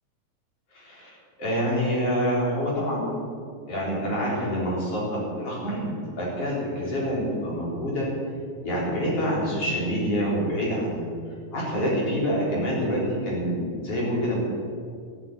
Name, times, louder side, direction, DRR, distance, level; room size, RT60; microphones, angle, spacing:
voice 1, 0.7-1.1 1.4-3.0 3.7-8.1 8.6-11.1 11.5-14.4, equal, 50° left, -6 dB, 5.3 m, -26 dB
12.5 x 8.1 x 9.9 m, 2.2 s
omnidirectional pair, 3.4 m